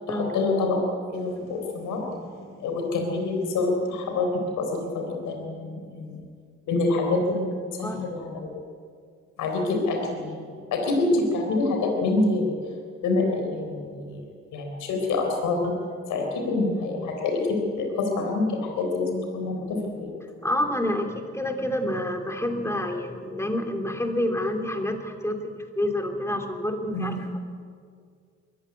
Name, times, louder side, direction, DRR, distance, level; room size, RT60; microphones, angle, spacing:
voice 1, 0.1-0.8 1.1-6.2 6.7-7.5 7.8-8.6 9.4-12.6 13.0-14.2 14.5-15.8 16.1-20.1 26.9-27.2, left 3 dB, 85° left, 2 dB, 4.0 m, -26 dB
voice 2, 20.4-27.4, left 1 dB, 10° left, 4 dB, 2.9 m, -28 dB
22.0 x 15.0 x 9.7 m, 2.1 s
cardioid pair, 90°, 30 cm